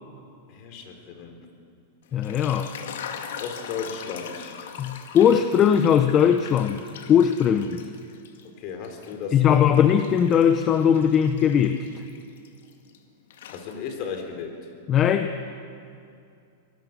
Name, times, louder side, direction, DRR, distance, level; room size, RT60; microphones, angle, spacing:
voice 1, 0.5-1.5 3.4-4.7 8.6-9.8 13.5-14.6, left 6 dB, 45° left, 4 dB, 3.7 m, -35 dB
sound 1, 2.1-8.5 8.8-13.0 13.3-14.1, left 7 dB, 75° left, 2.1 m, -41 dB
voice 2, 2.1-2.7 4.8-6.8 7.1-7.9 9.3-11.9 14.9-15.4, left 8 dB, 30° left, 9 dB, 0.9 m, -19 dB
25.0 x 18.5 x 6.8 m, 2.5 s
supercardioid pair, 140°, 0 cm